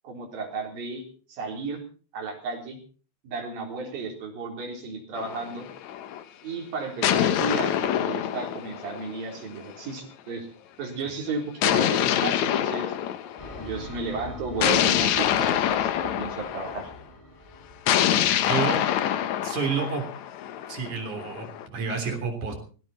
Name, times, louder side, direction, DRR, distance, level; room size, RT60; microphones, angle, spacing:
voice 1, 0.0-1.0 1.3-1.8 2.1-2.8 3.2-5.7 6.4-10.5 10.8-12.9 13.6-16.9, right 3 dB, 70° right, 1 dB, 5.7 m, -33 dB
sound 1, 5.2-6.2 7.0-9.6 11.6-13.7 14.6-16.9 17.9-21.7, left 11 dB, 65° left, 1.9 m, -25 dB
sound 2, 13.4-18.4, left 1 dB, 10° left, 7.6 m, -43 dB
voice 2, 18.5-18.8 19.4-20.0 20.7-22.5, right 5 dB, 55° right, 5 dB, 4.8 m, -29 dB
18.5 x 17.5 x 4.3 m, 0.40 s
omnidirectional pair, 4.3 m